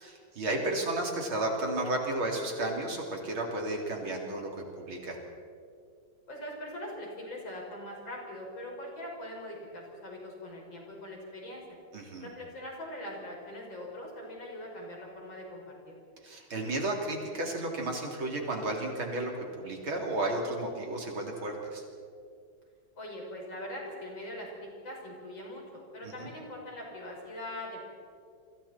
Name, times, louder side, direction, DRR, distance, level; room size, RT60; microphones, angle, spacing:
voice 1, 0.0-4.5 4.9-5.2 11.9-12.3 16.2-19.3 19.6-21.8 26.0-26.3, right 2 dB, 75° right, 0 dB, 4.3 m, -33 dB
voice 2, 6.3-11.8 12.2-16.0 23.0-27.8, left 1 dB, 65° left, -1 dB, 6.3 m, -42 dB
29.5 x 24.5 x 4.4 m, 2.2 s
omnidirectional pair, 2.3 m